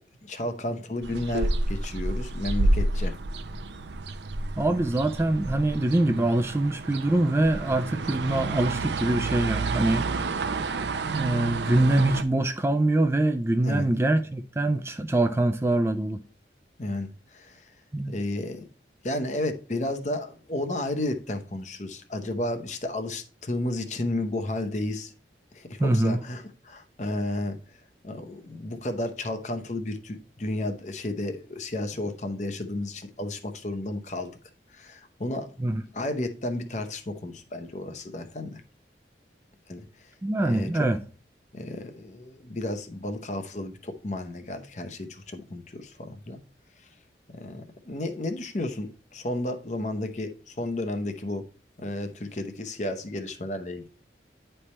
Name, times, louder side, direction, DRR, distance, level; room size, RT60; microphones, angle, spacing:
voice 1, 0.3-3.2 13.6-13.9 16.8-17.6 18.1-18.7 19.0-25.1 25.5-27.6 28.0-34.3 34.7-35.5 35.9-38.6 39.7-39.9 40.4-40.9 41.5-46.4 47.3-51.4 51.8-53.9, left 1 dB, 40° left, 0.8 m, -32 dB
sound 1, 1.0-12.2, right 2 dB, 80° right, 0.5 m, -29 dB
voice 2, 4.6-10.1 11.1-16.2 17.9-18.2 25.8-26.2 35.6-35.8 40.2-41.0, right 1 dB, 15° right, 0.3 m, -24 dB
9.9 x 3.4 x 4.2 m
head